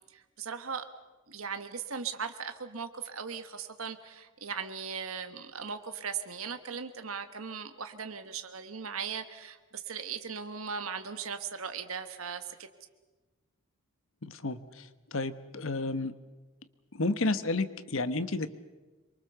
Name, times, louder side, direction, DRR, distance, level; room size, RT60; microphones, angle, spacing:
voice 1, 0.1-0.9 1.3-12.7, right 6 dB, 90° right, 8 dB, 1.5 m, -38 dB
voice 2, 14.2-16.1 16.9-18.5, left 2 dB, 75° left, 12 dB, 1.2 m, -31 dB
26.0 x 23.5 x 6.9 m, 1.2 s
head